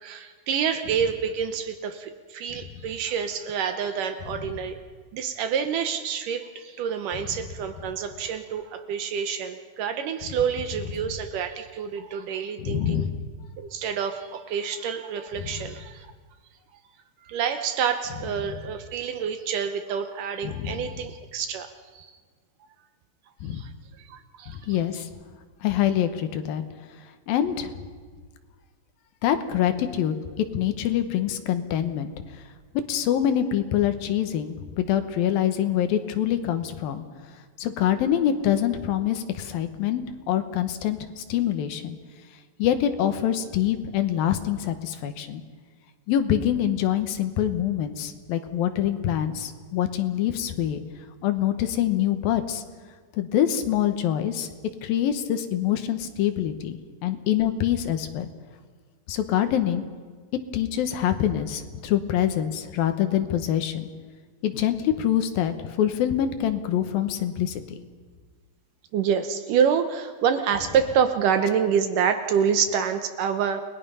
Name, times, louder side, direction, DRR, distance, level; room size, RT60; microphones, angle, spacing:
voice 1, 0.0-4.8 5.1-13.1 13.6-16.1 17.3-22.1 23.5-23.7 24.0-24.6 68.9-73.6, right 7 dB, 70° right, 8 dB, 2.2 m, -27 dB
voice 2, 12.6-13.2 15.4-15.5 20.4-20.8 23.4-23.6 24.5-25.1 25.6-26.6 27.3-27.7 29.2-30.1 30.5-32.1 32.9-37.0 37.6-42.0 42.6-45.4 46.1-50.8 51.2-52.6 53.1-54.5 54.8-58.3 59.1-59.8 60.5-63.9 64.4-67.8, left 10 dB, 75° left, 8 dB, 2.9 m, -25 dB
29.5 x 20.0 x 5.5 m, 1.6 s
omnidirectional pair, 4.3 m